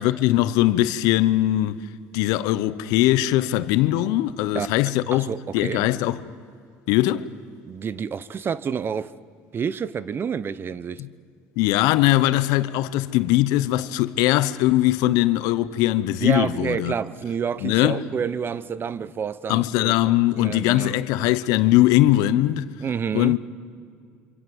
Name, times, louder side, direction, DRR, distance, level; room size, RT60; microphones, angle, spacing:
voice 1, 0.0-1.8 2.1-6.2 6.9-7.3 11.0-11.1 11.6-16.9 17.6-18.0 19.5-22.7 23.1-23.4, left 15 dB, 75° left, 1.0 m, -21 dB
voice 2, 5.1-6.0 7.6-9.1 9.5-11.0 16.2-19.9 20.4-21.0 22.8-23.4, right 7 dB, 35° right, 1.0 m, -29 dB
27.0 x 26.5 x 8.0 m
supercardioid pair, 95°, 6 cm